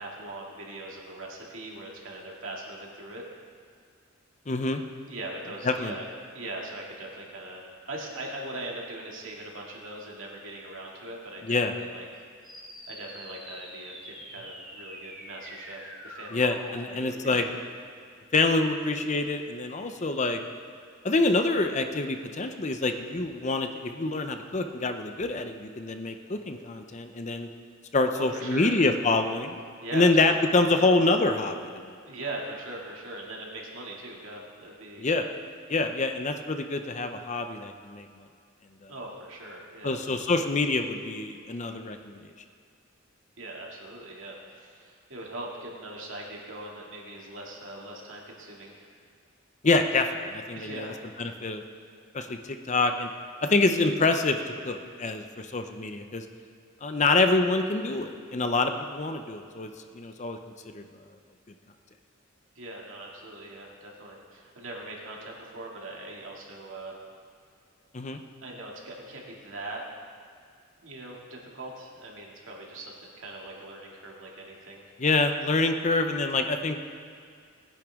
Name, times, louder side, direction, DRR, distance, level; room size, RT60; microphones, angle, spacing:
voice 1, 0.0-3.2 5.1-6.1 6.3-12.2 12.9-16.5 16.8-17.5 28.1-28.7 29.8-30.2 30.4-30.9 32.1-35.3 38.9-40.0 43.4-49.0 50.5-51.0 62.5-67.0 68.4-69.8 70.8-74.8 75.2-75.4, right 2 dB, 65° right, -2 dB, 2.4 m, -41 dB
voice 2, 4.5-4.8 5.6-5.9 11.4-11.7 16.3-17.5 18.3-20.4 21.0-27.5 27.9-29.5 29.9-32.0 35.0-35.2 35.7-38.1 38.8-38.9 39.8-42.2 49.6-50.9 51.2-51.6 52.1-53.1 53.4-54.4 54.6-56.2 56.8-60.4 60.7-60.9 67.9-68.2 75.0-76.8, left 3 dB, 35° left, 6 dB, 0.7 m, -26 dB
sound 1, 12.4-17.4, equal, ahead, 2.4 m, -45 dB
20.0 x 10.0 x 3.7 m, 2.3 s
head